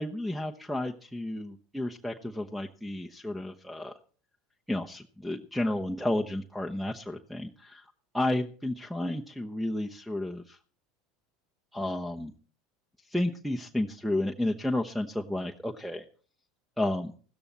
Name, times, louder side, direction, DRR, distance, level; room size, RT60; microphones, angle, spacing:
voice 1, 0.0-3.9 4.7-7.9 8.1-10.6 11.7-12.3 13.1-16.0 16.8-17.1, left 1 dB, ahead, 8 dB, 1.0 m, -32 dB
16.0 x 14.0 x 4.2 m, 0.41 s
hypercardioid pair, 75°, 0 cm